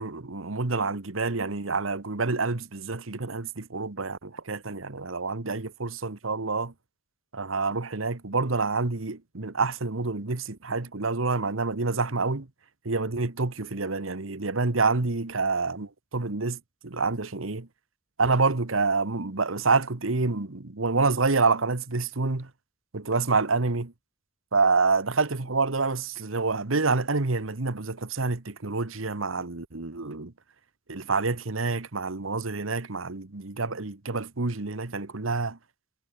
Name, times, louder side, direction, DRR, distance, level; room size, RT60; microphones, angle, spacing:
voice 1, 0.0-6.7 7.3-12.5 12.8-17.7 18.2-22.5 22.9-23.9 24.5-30.3 30.9-35.6, right 3 dB, 90° right, 1.4 m, -27 dB
head